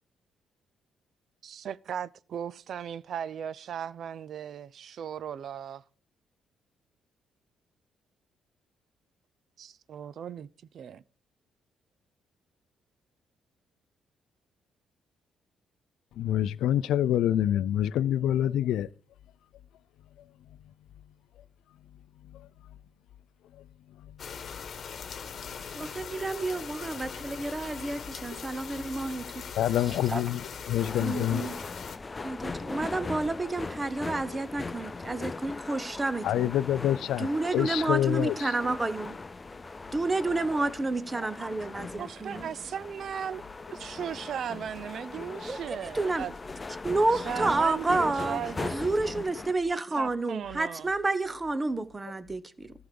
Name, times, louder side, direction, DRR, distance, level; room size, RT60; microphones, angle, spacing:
voice 1, 1.4-5.8 9.6-10.5 10.7-11.0 42.0-43.4 43.7-46.3 47.2-48.9 50.0-50.9, right 8 dB, 60° right, 0.5 m, -37 dB
voice 2, 16.2-18.9 22.2-22.5 23.6-23.7 24.0-24.2 25.4-25.6 28.3-28.4 29.6-31.5 36.2-38.5, left 11 dB, 80° left, 0.5 m, -27 dB
sound 1, 24.2-32.0, left 6 dB, 50° left, 1.3 m, -41 dB
voice 3, 25.7-29.3 29.9-30.2 31.0-31.6 32.2-36.5 37.2-39.2 39.9-42.5 45.5-46.3 46.8-48.4 48.7-52.7, right 2 dB, 20° right, 1.0 m, -30 dB
sound 2, 30.8-49.5, left 3 dB, 25° left, 0.5 m, -39 dB
14.0 x 4.8 x 6.9 m
cardioid pair, 90°, 0 cm